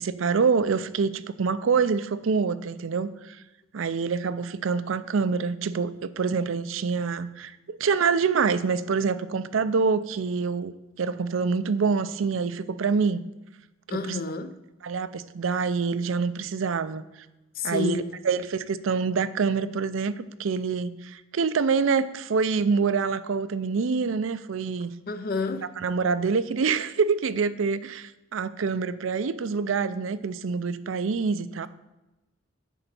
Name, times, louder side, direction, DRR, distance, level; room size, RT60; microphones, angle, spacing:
voice 1, 0.0-3.4 3.7-13.2 13.9-14.2 14.8-17.0 17.6-24.9 25.8-31.7, right 5 dB, 75° right, 0.5 m, -26 dB
voice 2, 13.9-14.6 17.6-18.1 25.1-25.7, left 3 dB, 50° left, 0.6 m, -29 dB
10.0 x 4.0 x 6.9 m
head